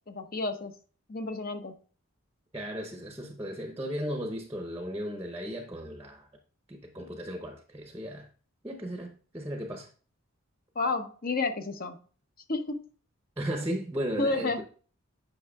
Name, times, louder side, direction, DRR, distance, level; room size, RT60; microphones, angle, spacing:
voice 1, 0.1-0.7 1.1-1.7 10.7-12.0 12.5-12.9 14.2-14.6, left 3 dB, 40° left, 0.8 m, -31 dB
voice 2, 2.5-6.3 6.7-8.3 8.6-9.9 13.4-14.6, equal, 15° right, 0.7 m, -35 dB
8.5 x 5.7 x 2.3 m
head